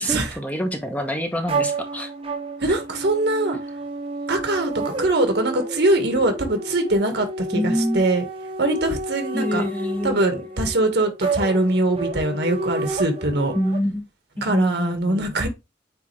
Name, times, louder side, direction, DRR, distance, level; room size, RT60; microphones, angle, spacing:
voice 1, 0.0-2.1 7.5-8.0 9.3-10.3 13.5-14.1 14.4-15.3, equal, 10° left, 1.0 m, -26 dB
sound 1, 1.5-13.8, right 2 dB, 30° right, 1.9 m, -30 dB
voice 2, 2.6-3.6 4.3-8.2 8.6-9.6 10.0-13.6 14.4-15.5, right 2 dB, 65° right, 1.6 m, -22 dB
8.6 x 3.3 x 3.2 m
head